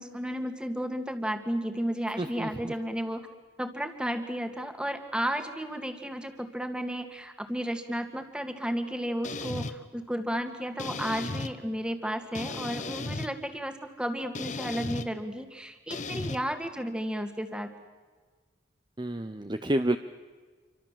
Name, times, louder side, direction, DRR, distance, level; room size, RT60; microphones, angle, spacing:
voice 1, 0.0-3.3 3.6-17.7, equal, 5° right, 7 dB, 2.0 m, -33 dB
voice 2, 2.2-2.7 19.0-20.0, right 1 dB, 25° right, 9 dB, 0.8 m, -29 dB
sound 1, 9.2-9.7 10.8-11.5 12.4-13.3 14.4-15.1 15.9-16.4, left 3 dB, 40° left, 1.2 m, -35 dB
28.0 x 24.5 x 7.5 m, 1.4 s
head